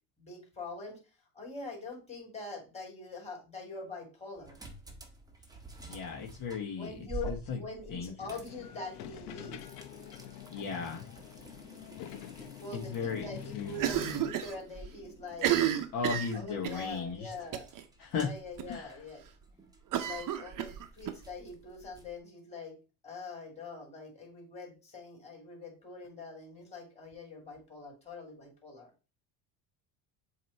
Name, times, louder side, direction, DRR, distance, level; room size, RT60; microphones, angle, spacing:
voice 1, 0.2-1.0 1.3-4.6 6.8-9.7 12.6-15.6 16.3-17.7 18.2-19.2 20.0-22.7 23.0-28.9, left 3 dB, 15° left, -2 dB, 3.9 m, -44 dB
sound 1, 4.4-22.2, right 3 dB, 10° right, 1.2 m, -50 dB
voice 2, 5.9-6.9 7.2-7.6 7.9-8.1 10.5-11.0 12.7-13.7 15.9-17.3 18.0-18.3 18.7-18.9, left 5 dB, 40° left, -1 dB, 1.5 m, -36 dB
sound 2, 8.5-14.3, left 11 dB, 80° left, 1.0 m, -46 dB
Cough, 13.8-14.6 14.8-14.9 15.3-16.9 17.5-17.8 18.1-18.2 18.6-18.7 19.9-21.2, right 11 dB, 40° right, 0.9 m, -31 dB
7.3 x 3.0 x 4.5 m, 0.32 s
supercardioid pair, 105°, 49 cm